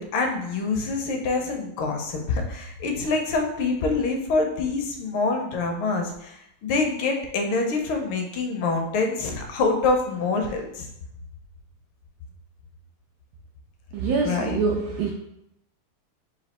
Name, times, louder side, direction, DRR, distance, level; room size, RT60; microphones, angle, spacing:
voice 1, 0.0-10.9 14.2-14.6, left 3 dB, 75° left, 3 dB, 1.5 m, -26 dB
voice 2, 13.9-15.1, right 4 dB, 85° right, 1 dB, 0.9 m, -25 dB
4.2 x 2.6 x 4.1 m, 0.80 s
omnidirectional pair, 2.3 m